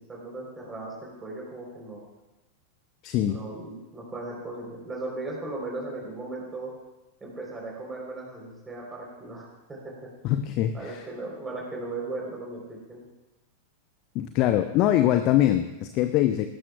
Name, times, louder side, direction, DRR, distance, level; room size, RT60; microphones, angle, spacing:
voice 1, 0.0-2.0 3.2-6.7 7.2-10.1 10.7-13.0, right 2 dB, 15° right, -3 dB, 3.7 m, -37 dB
voice 2, 3.0-3.4 10.2-11.0 14.1-16.5, left 12 dB, 40° left, 9 dB, 0.6 m, -23 dB
17.5 x 13.5 x 2.3 m, 1.1 s
figure-of-eight pair, 90°, 0 cm